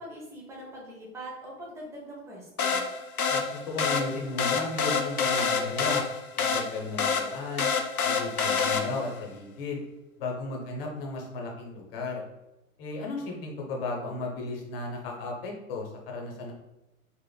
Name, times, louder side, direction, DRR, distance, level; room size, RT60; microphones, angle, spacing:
voice 1, 0.0-2.8, right 1 dB, 5° right, -3 dB, 0.6 m, -42 dB
sound 1, 2.6-9.2, left 5 dB, 85° left, 0.6 m, -27 dB
voice 2, 3.3-6.0 6.4-7.7 8.0-9.8 10.2-12.2 12.8-16.5, left 3 dB, 40° left, 0 dB, 0.9 m, -35 dB
3.7 x 2.9 x 2.2 m, 0.95 s
figure-of-eight pair, 95°, 43 cm